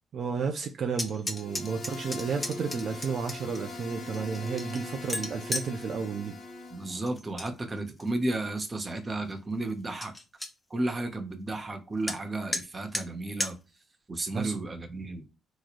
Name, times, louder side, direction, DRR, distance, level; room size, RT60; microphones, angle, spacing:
voice 1, 0.1-6.3 14.3-14.6, right 5 dB, 55° right, 0.5 m, -32 dB
sound 1, 0.9-3.6 4.1-5.7 7.0-7.5 7.9-8.4 8.9-9.0 9.3-9.4 9.7-9.8 10.0-10.5 12.1-12.2 12.5-12.6 12.9-13.1 13.4-13.5, left 2 dB, 20° left, 0.7 m, -34 dB
sound 2, 1.3-7.1, left 2 dB, 55° left, 1.0 m, -43 dB
Bowed string instrument, 1.8-7.1, left 3 dB, 40° left, 1.2 m, -46 dB
voice 2, 6.7-10.1 10.7-13.6 14.1-15.2, right 2 dB, 25° right, 0.9 m, -33 dB
3.7 x 3.1 x 2.5 m
cardioid pair, 90°, 0 cm